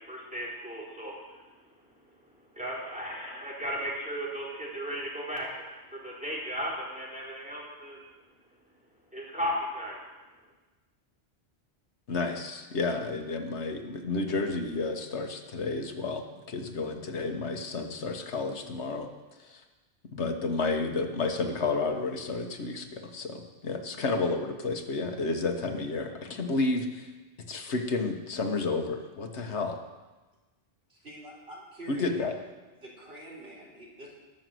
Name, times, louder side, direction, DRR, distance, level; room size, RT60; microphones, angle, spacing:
voice 1, 0.0-1.5 2.5-8.0 9.1-10.0, equal, 5° right, -5 dB, 3.8 m, -35 dB
voice 2, 12.1-19.1 19.4-19.6 20.1-27.1 27.5-29.8 31.9-32.3, left 3 dB, 85° left, 5 dB, 1.6 m, -31 dB
voice 3, 30.9-32.5 32.8-34.2, right 1 dB, 60° right, -5 dB, 4.0 m, -46 dB
19.5 x 6.7 x 7.7 m, 1.2 s
omnidirectional pair, 1.1 m